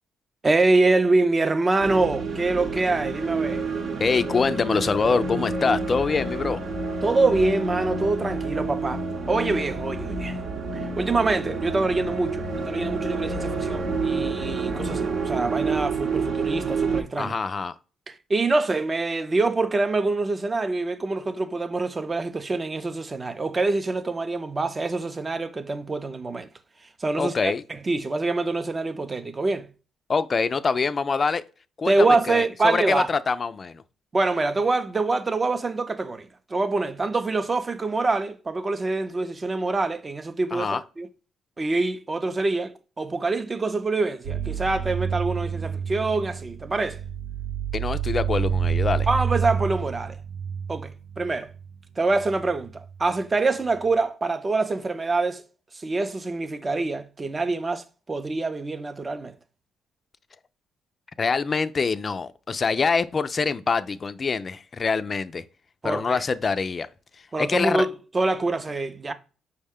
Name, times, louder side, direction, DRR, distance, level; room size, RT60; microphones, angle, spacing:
voice 1, 0.4-3.6 7.0-10.4 10.7-17.3 18.1-26.5 27.0-29.7 31.9-33.1 34.1-41.1 41.6-47.0 49.1-50.2 50.7-51.5 52.0-55.4 55.7-59.3 65.8-66.2 67.3-69.1, right 3 dB, 25° right, 0.5 m, -25 dB
sound 1, 1.8-17.0, right 4 dB, 60° right, 0.8 m, -29 dB
voice 2, 4.0-6.6 17.2-17.7 27.2-27.6 30.1-31.4 31.8-33.8 40.5-40.8 47.7-49.1 61.2-65.4 65.8-66.9 67.4-67.9, left 4 dB, 35° left, 0.3 m, -25 dB
sound 2, 44.2-51.7 52.1-53.0, right 7 dB, 90° right, 0.4 m, -29 dB
5.5 x 2.1 x 3.4 m
cardioid pair, 90°, 0 cm